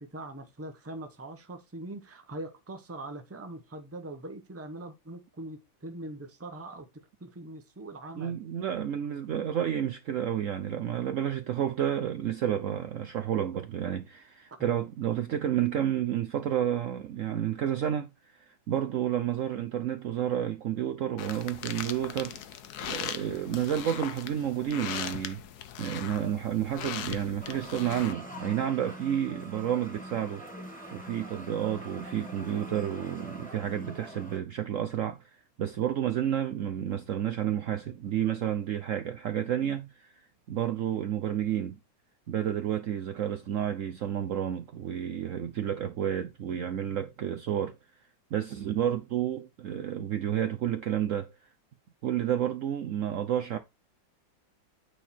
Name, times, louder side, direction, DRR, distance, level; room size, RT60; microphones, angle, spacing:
voice 1, 0.0-6.9 7.2-8.4 14.6-14.7, right 2 dB, 15° right, 0.5 m, -42 dB
voice 2, 8.2-22.4 22.8-25.4 25.8-30.4 30.9-40.1 40.5-41.8 42.3-47.8 48.3-51.3 52.0-53.6, right 10 dB, 85° right, 0.7 m, -30 dB
sound 1, 21.2-28.1, left 9 dB, 65° left, 1.2 m, -39 dB
sound 2, 27.4-34.4, equal, 5° left, 1.5 m, -43 dB
9.0 x 4.4 x 4.3 m
omnidirectional pair, 2.1 m